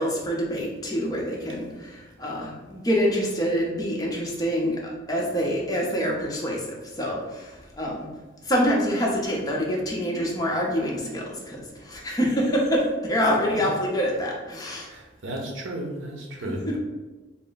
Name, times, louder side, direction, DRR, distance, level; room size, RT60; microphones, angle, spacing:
voice 1, 0.0-8.1 8.4-14.9 16.4-16.8, equal, 20° left, -3 dB, 0.6 m, -26 dB
voice 2, 14.9-16.8, right 1 dB, 85° right, 1 dB, 0.7 m, -34 dB
4.0 x 2.1 x 3.9 m, 1.2 s
head